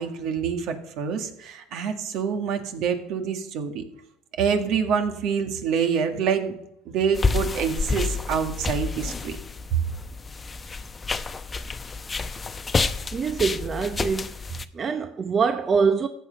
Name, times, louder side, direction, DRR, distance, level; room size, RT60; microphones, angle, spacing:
voice 1, 0.0-3.8 4.4-6.6 6.9-9.4 9.7-9.8, right 7 dB, 60° right, 1.9 m, -26 dB
sound 1, 7.1-14.7, left 4 dB, 20° left, 0.8 m, -29 dB
voice 2, 13.1-14.4 14.7-16.1, right 5 dB, 30° right, 0.8 m, -24 dB
14.5 x 8.3 x 5.4 m
supercardioid pair, 100°, 0 cm